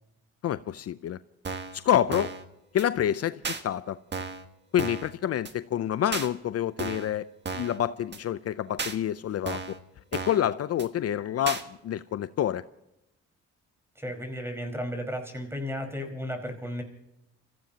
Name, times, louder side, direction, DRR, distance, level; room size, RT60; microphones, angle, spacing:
voice 1, 0.4-1.2 1.7-2.3 2.7-4.0 4.7-7.2 7.6-9.8 10.1-12.6, left 10 dB, 55° left, 0.6 m, -28 dB
sound 1, 1.4-1.8 2.1-2.4 2.8-2.9 3.4-3.6 4.1-4.4 4.8-5.1 5.4-5.5 6.1-6.3 6.8-7.1 7.4-7.8 8.1-8.2 8.8-9.0 9.5-9.8 10.1-10.4 10.8-10.9 11.5-11.6, right 4 dB, 35° right, 1.7 m, -34 dB
voice 2, 13.9-16.8, equal, 10° right, 4.9 m, -34 dB
30.0 x 15.5 x 2.9 m
cardioid pair, 90°, 30 cm